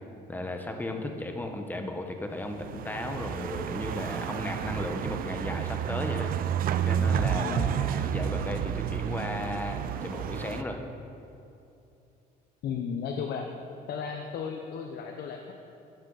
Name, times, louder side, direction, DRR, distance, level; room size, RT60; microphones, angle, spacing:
voice 1, 0.3-6.3 6.9-10.8, left 1 dB, 10° left, 4 dB, 1.2 m, -35 dB
sound 1, 2.5-10.6, right 9 dB, 60° right, 0.5 m, -30 dB
voice 2, 7.3-7.7 12.6-13.5 13.9-15.5, left 6 dB, 70° left, 4 dB, 0.9 m, -34 dB
15.5 x 9.2 x 4.1 m, 2.7 s
cardioid pair, 110°, 17 cm